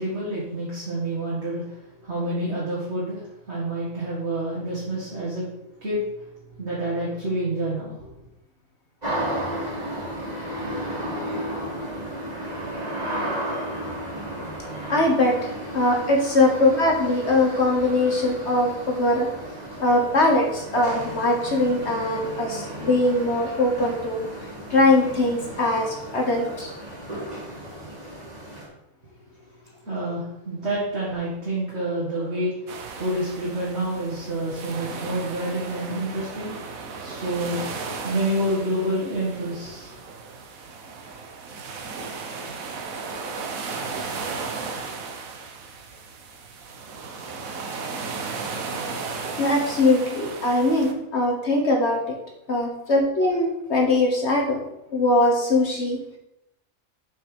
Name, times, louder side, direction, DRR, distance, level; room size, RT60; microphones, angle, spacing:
voice 1, 0.0-5.5 5.8-6.0 6.6-8.1 29.9-32.7 32.9-36.7 37.0-39.9, right 1 dB, 50° right, -7 dB, 2.3 m, -28 dB
sound 1, 9.0-28.7, right 1 dB, 30° right, 2.6 m, -33 dB
voice 2, 14.9-15.4 15.7-19.3 19.8-24.3 24.7-26.7 49.4-52.0 52.5-54.6 54.9-56.0, left 2 dB, 55° left, 1 dB, 1.4 m, -21 dB
sound 2, 32.7-50.9, right 4 dB, 80° right, 1.4 m, -35 dB
7.2 x 6.0 x 5.1 m, 0.86 s
omnidirectional pair, 1.4 m